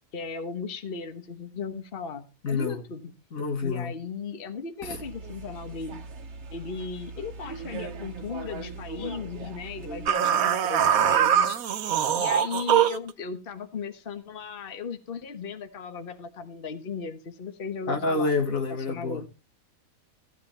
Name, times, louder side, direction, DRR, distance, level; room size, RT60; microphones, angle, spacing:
voice 1, 0.1-3.1 3.6-6.0 6.5-11.6 12.2-18.3 18.9-19.3, left 5 dB, 45° left, 1.3 m, -36 dB
voice 2, 2.4-2.8 3.3-3.9 4.8-5.0 17.9-19.2, left 3 dB, 75° left, 2.1 m, -28 dB
sound 1, 4.8-10.1, right 3 dB, 55° right, 1.4 m, -40 dB
sound 2, 10.1-13.1, right 9 dB, 80° right, 1.3 m, -22 dB
14.5 x 9.5 x 4.3 m
omnidirectional pair, 1.5 m